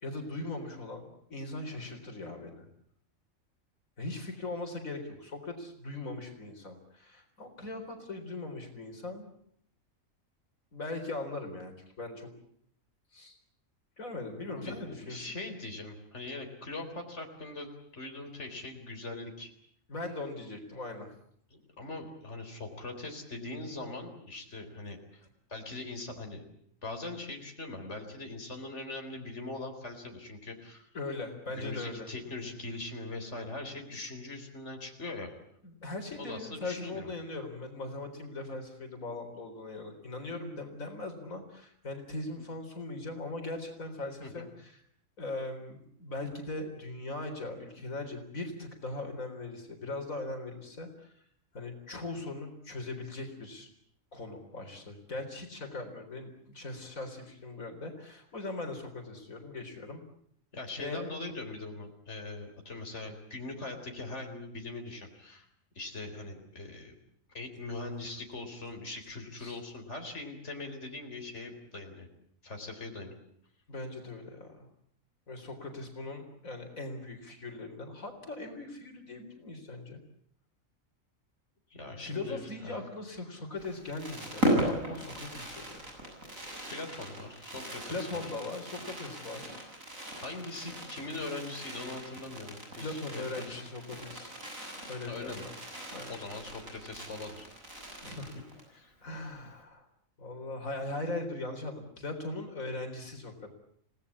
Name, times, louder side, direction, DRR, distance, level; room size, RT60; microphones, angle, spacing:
voice 1, 0.0-2.7 4.0-9.3 10.7-12.3 13.1-13.4 14.0-15.4 19.9-21.1 30.9-32.1 35.6-44.8 45.2-51.2 51.5-53.7 54.1-60.0 60.8-61.1 69.4-69.6 73.7-74.7 75.3-80.0 82.0-85.9 87.9-89.6 92.7-94.3 94.9-95.5 95.9-96.1 98.0-98.3 99.0-99.9 100.2-103.5, left 2 dB, 85° left, 4 dB, 4.4 m, -40 dB
voice 2, 14.6-19.5 21.5-26.4 26.8-30.9 31.6-35.3 36.2-37.1 44.2-44.5 60.5-65.5 65.7-67.0 67.3-72.1 72.4-73.1 81.7-82.8 86.7-88.2 90.0-93.6 95.1-95.4 96.1-97.5 98.7-99.0, left 2 dB, 55° left, 3 dB, 4.4 m, -41 dB
Fireworks, 83.6-98.8 99.0-99.1 99.3-99.6, right 1 dB, 80° right, 7.9 m, -38 dB
30.0 x 18.5 x 8.5 m, 0.69 s
omnidirectional pair, 1.4 m